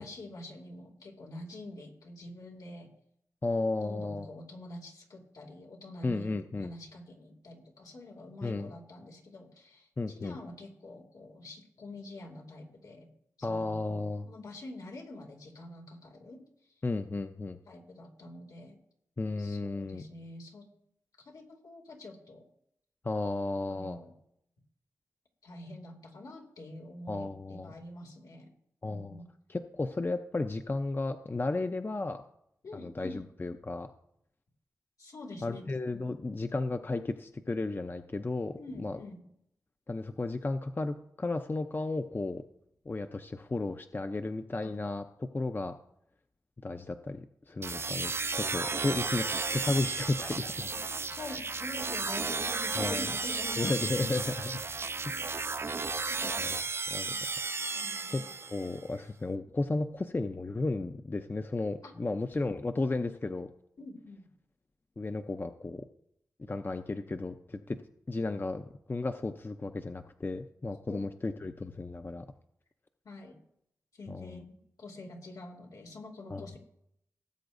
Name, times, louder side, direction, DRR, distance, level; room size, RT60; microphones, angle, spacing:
voice 1, 0.0-2.9 3.8-6.3 6.6-13.1 13.5-13.7 14.2-16.4 17.7-18.8 19.4-20.6 21.2-22.4 23.7-24.1 25.4-28.5 28.9-29.3 32.6-33.2 35.0-35.6 38.6-39.3 44.6-44.7 50.7-50.8 51.1-53.9 55.1-55.3 56.1-56.5 57.1-57.2 57.7-58.3 61.8-61.9 63.8-64.2 70.9-71.0 73.0-73.3 73.9-76.6, left 2 dB, 80° left, 1 dB, 2.4 m, -46 dB
voice 2, 3.4-4.3 6.0-6.7 8.4-8.7 10.0-10.4 13.4-14.3 16.8-17.6 19.2-20.0 23.0-24.0 27.1-27.7 28.8-29.2 29.5-32.2 32.7-33.9 35.4-39.0 39.9-42.4 42.9-45.7 46.6-50.7 52.7-53.1 53.6-54.6 55.1-55.5 56.4-56.6 56.9-57.1 58.1-63.5 65.0-65.9 66.4-67.8 68.1-72.2 74.1-74.4 76.3-76.5, left 2 dB, 35° left, 8 dB, 0.6 m, -34 dB
sound 1, 47.6-58.8, right 4 dB, 45° right, 0.4 m, -34 dB
18.0 x 7.9 x 2.6 m, 0.75 s
cardioid pair, 55°, 6 cm